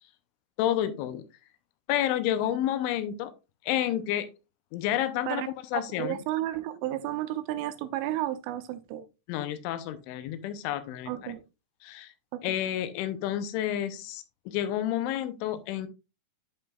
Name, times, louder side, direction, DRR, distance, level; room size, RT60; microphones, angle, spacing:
voice 1, 0.6-1.2 1.9-3.3 3.6-4.3 4.7-5.4 5.7-6.2 9.3-11.3 11.8-12.1 12.4-15.9, left 12 dB, 85° left, 3.1 m, -30 dB
voice 2, 6.0-9.1 11.1-11.4, right 14 dB, 85° right, 3.2 m, -32 dB
11.0 x 5.4 x 2.3 m
omnidirectional pair, 5.4 m